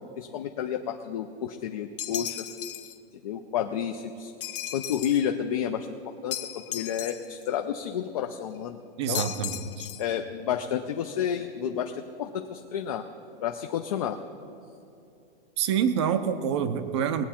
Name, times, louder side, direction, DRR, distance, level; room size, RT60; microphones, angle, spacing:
voice 1, 0.0-2.5 3.2-4.3 4.7-5.9 6.2-8.8 9.1-9.3 10.0-13.1 13.4-14.2, left 9 dB, 40° left, 5 dB, 0.4 m, -30 dB
sound 1, 2.0-3.0 4.4-5.3 6.3-7.5 9.1-10.2, left 11 dB, 60° left, 0.8 m, -36 dB
voice 2, 9.0-9.9 15.6-17.2, right 8 dB, 30° right, 10 dB, 0.5 m, -27 dB
20.0 x 8.2 x 4.4 m, 2.6 s
supercardioid pair, 175°, 30 cm